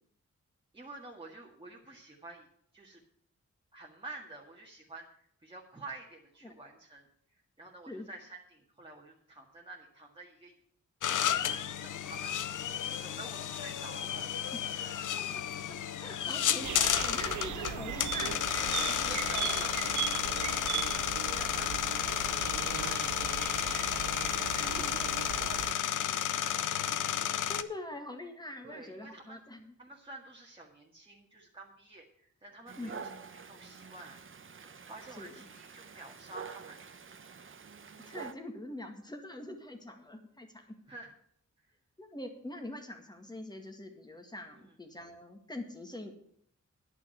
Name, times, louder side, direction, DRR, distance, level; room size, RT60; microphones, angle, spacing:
voice 1, 0.7-2.5 2.7-3.0 3.7-10.5 11.1-12.3 12.6-12.8 13.0-15.1 19.1-26.6 28.6-29.4 29.8-34.2 34.6-36.8 40.9-41.1 41.6-41.7 44.5-44.7, right 2 dB, 20° right, -2 dB, 1.8 m, -50 dB
sound 1, 11.0-27.6, left 10 dB, 85° left, 0.6 m, -32 dB
voice 2, 14.5-15.0 16.0-19.6 20.7-20.8 24.6-24.8 27.5-29.7 32.8-33.1 35.2-35.3 38.0-40.6 42.0-46.1, left 1 dB, 15° left, 5 dB, 2.0 m, -44 dB
sound 2, 16.6-25.7, right 12 dB, 75° right, 0.5 m, -38 dB
Dog, 32.7-38.3, right 5 dB, 40° right, 0.9 m, -47 dB
11.0 x 6.0 x 8.9 m, 0.68 s
wide cardioid pair, 85°, 30 cm